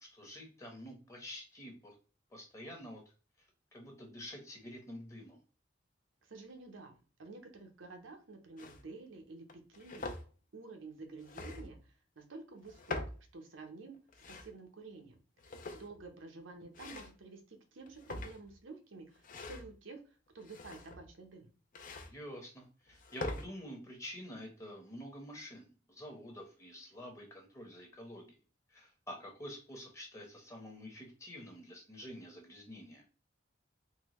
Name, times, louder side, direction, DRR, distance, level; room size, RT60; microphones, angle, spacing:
voice 1, 0.0-1.9 2.3-3.0 3.4-3.5 3.7-5.4 22.0-28.4 28.7-33.0, equal, 15° left, 1 dB, 0.9 m, -48 dB
voice 2, 6.2-13.0 13.3-14.0 14.3-15.2 15.4-21.5, right 3 dB, 80° right, 4 dB, 0.8 m, -51 dB
sound 1, 8.6-8.8 9.5-10.2 11.2-11.8 12.6-13.3 13.9-14.5 15.4-16.1 16.7-17.2 17.9-18.6 19.2-19.7 20.4-21.1 21.7-22.1 22.9-23.5, left 2 dB, 45° left, 0.5 m, -43 dB
3.8 x 2.2 x 3.0 m, 0.36 s
head